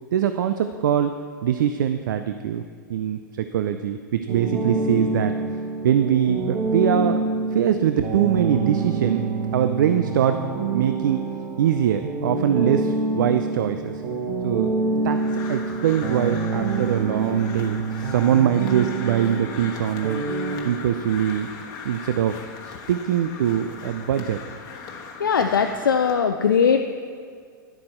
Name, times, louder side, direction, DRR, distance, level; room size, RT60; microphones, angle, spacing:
voice 1, 0.1-1.1 1.4-2.6 2.9-5.3 5.8-7.2 7.5-9.3 9.5-10.4 10.7-11.3 11.6-14.0 14.4-15.2 15.5-20.2 20.6-21.5 21.8-22.4 22.6-24.4, right 9 dB, 70° right, 9 dB, 0.4 m, -23 dB
sound 1, 4.3-20.6, right 3 dB, 50° right, 1.4 m, -27 dB
Crow, 15.1-26.2, left 5 dB, 35° left, 1.3 m, -39 dB
voice 2, 25.2-26.9, left 6 dB, 85° left, 5 dB, 0.4 m, -20 dB
10.5 x 7.5 x 4.3 m, 2.1 s
hypercardioid pair, 100°, 11 cm